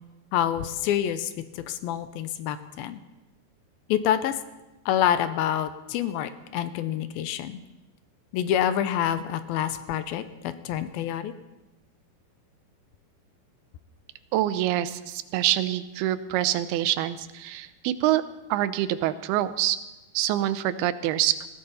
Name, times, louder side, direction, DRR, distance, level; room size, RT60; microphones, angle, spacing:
voice 1, 0.3-3.0 3.9-4.4 4.9-7.6 8.3-11.3, left 10 dB, 85° left, 11 dB, 2.5 m, -27 dB
voice 2, 14.3-18.2 18.5-19.8 20.1-21.5, right 13 dB, 90° right, 13 dB, 2.7 m, -25 dB
20.0 x 16.0 x 4.1 m, 1.0 s
omnidirectional pair, 4.4 m